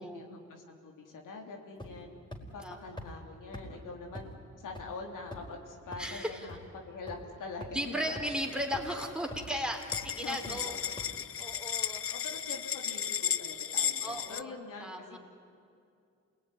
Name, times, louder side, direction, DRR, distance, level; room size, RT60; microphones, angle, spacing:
voice 1, 0.0-2.1 2.5-4.3 4.6-8.3 10.2-10.9 12.1-15.2, left 3 dB, 85° left, 1 dB, 3.2 m, -44 dB
sound 1, 1.8-2.0 2.3-2.4 3.0-3.1 3.5-3.6 4.1-4.2 4.7-4.8 5.3-5.5 5.9-6.0 6.5-6.6 7.1-7.2 7.6-7.7 8.1-8.3 8.7-8.8 9.3-9.5 9.9-10.0 10.4-10.5 11.0-11.1, left 1 dB, 15° left, 4.6 m, -42 dB
voice 2, 6.0-6.5 7.7-10.8 11.4-12.0 14.0-15.2, equal, 5° right, 2 dB, 3.7 m, -36 dB
sound 2, 8.5-9.0 9.4-9.5 9.7-14.4, left 8 dB, 45° left, 0.6 m, -34 dB
27.5 x 19.0 x 10.0 m, 2.4 s
cardioid pair, 70°, 31 cm